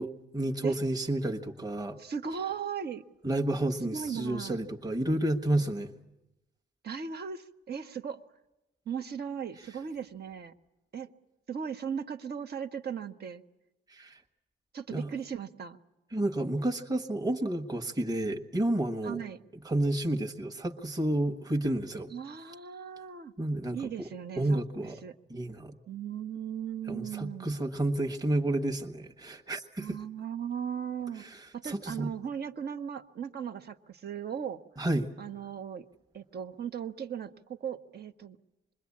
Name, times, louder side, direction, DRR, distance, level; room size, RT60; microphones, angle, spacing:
voice 1, 0.0-2.0 3.2-5.9 13.9-14.2 14.9-15.1 16.1-19.2 19.6-22.1 23.4-23.9 24.4-25.0 25.3-25.8 26.9-30.0 31.2-32.1 34.8-35.1, right 1 dB, 20° right, 3 dB, 1.4 m, -30 dB
voice 2, 2.0-3.0 3.9-4.6 6.8-8.2 8.9-10.5 10.9-11.1 11.5-13.4 14.7-15.8 19.0-19.4 22.1-23.3 23.7-24.6 25.0-25.1 25.9-27.6 29.8-31.2 31.5-34.6 35.2-35.9 36.1-38.4, right 7 dB, 55° right, 7 dB, 1.2 m, -37 dB
26.5 x 22.0 x 8.6 m, 0.97 s
cardioid pair, 120°, 20 cm